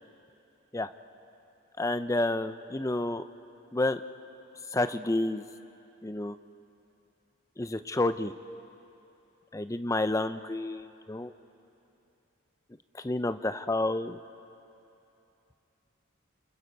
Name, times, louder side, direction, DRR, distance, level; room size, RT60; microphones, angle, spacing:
voice 1, 1.8-3.2 3.7-4.0 4.7-5.4 6.0-6.3 7.6-8.3 9.5-11.3 13.0-14.2, left 2 dB, 15° left, 11 dB, 0.5 m, -29 dB
29.5 x 27.5 x 5.3 m, 2.9 s
head